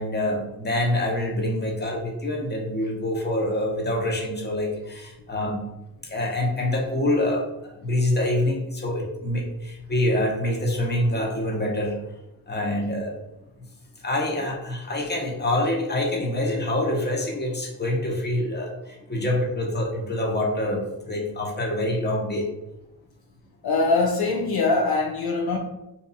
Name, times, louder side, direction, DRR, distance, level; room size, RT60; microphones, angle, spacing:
voice 1, 0.0-5.7 6.0-12.0 12.5-13.1 14.0-22.5, left 1 dB, 25° left, 0 dB, 1.0 m, -26 dB
voice 2, 23.6-25.6, left 3 dB, 60° left, 0 dB, 0.7 m, -22 dB
2.9 x 2.2 x 4.0 m, 0.91 s
supercardioid pair, 55°, 41 cm